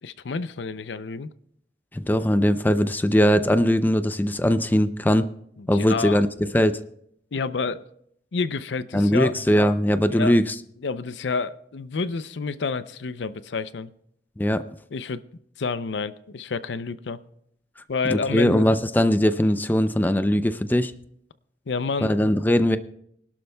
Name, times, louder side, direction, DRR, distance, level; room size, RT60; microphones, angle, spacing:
voice 1, 0.0-1.3 5.6-6.2 7.3-7.8 8.3-9.3 10.1-10.3 10.8-13.9 14.9-15.2 15.6-17.2 17.9-18.7 21.7-22.2, left 4 dB, 85° left, 0.6 m, -29 dB
voice 2, 1.9-5.3 5.7-6.8 8.9-10.4 14.4-14.6 18.1-20.9 22.0-22.8, equal, 10° left, 0.4 m, -20 dB
24.5 x 12.0 x 2.3 m
head